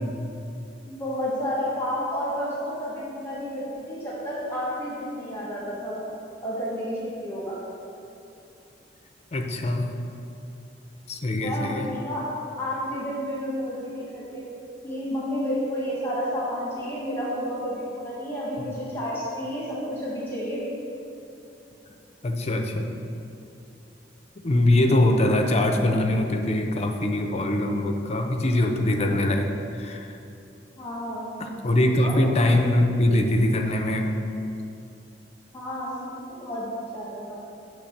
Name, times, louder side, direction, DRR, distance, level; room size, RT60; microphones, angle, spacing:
voice 1, 0.9-6.0 6.4-7.6 11.4-12.3 12.6-14.4 14.8-20.6 30.8-31.3 32.0-32.2 35.5-37.4, equal, 10° left, -7 dB, 1.3 m, -31 dB
voice 2, 9.3-9.9 11.1-11.9 18.6-18.7 21.9-22.0 22.2-22.9 24.4-30.2 31.4-34.1, left 1 dB, 35° left, 4 dB, 0.6 m, -23 dB
8.4 x 3.3 x 6.5 m, 2.7 s
head